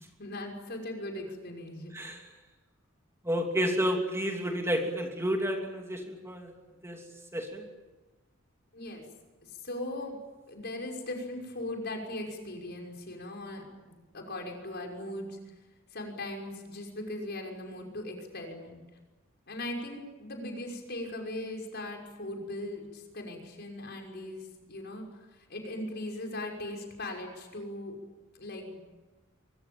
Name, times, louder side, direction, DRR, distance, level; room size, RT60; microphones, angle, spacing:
voice 1, 0.2-2.0 8.7-9.0 9.4-10.2 10.5-15.4 15.9-18.8 19.5-28.0 28.3-28.8, left 1 dB, 55° left, 2 dB, 6.1 m, -39 dB
voice 2, 3.2-6.5 6.8-7.0 7.3-7.7, equal, 15° right, 2 dB, 3.0 m, -30 dB
24.5 x 23.5 x 8.9 m, 1.2 s
head